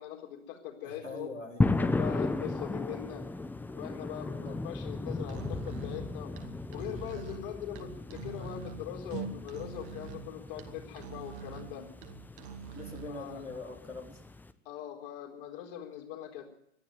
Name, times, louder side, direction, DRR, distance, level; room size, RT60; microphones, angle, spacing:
voice 1, 0.0-1.3 1.8-3.2 3.7-6.3 6.7-11.9 13.1-13.4 14.6-16.5, left 10 dB, 45° left, 3 dB, 4.1 m, -41 dB
voice 2, 0.8-1.6 4.4-4.6 7.2-7.3 11.7-11.9 12.7-14.2, left 2 dB, 90° left, 0 dB, 4.1 m, -43 dB
sound 1, 1.6-14.5, left 3 dB, 5° left, 0.9 m, -36 dB
Musical instrument, 5.2-13.2, right 7 dB, 45° right, 2.5 m, -45 dB
21.5 x 13.5 x 9.4 m, 0.74 s
figure-of-eight pair, 100°, 37 cm